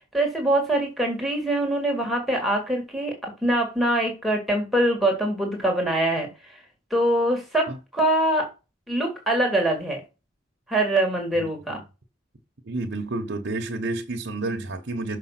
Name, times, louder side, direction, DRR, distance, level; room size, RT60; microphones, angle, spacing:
voice 1, 0.1-6.3 6.9-8.5 8.9-10.0 10.7-11.8, right 1 dB, ahead, 2.1 m, -23 dB
voice 2, 12.6-15.2, right 2 dB, 60° right, 1.1 m, -30 dB
6.6 x 5.2 x 5.9 m
head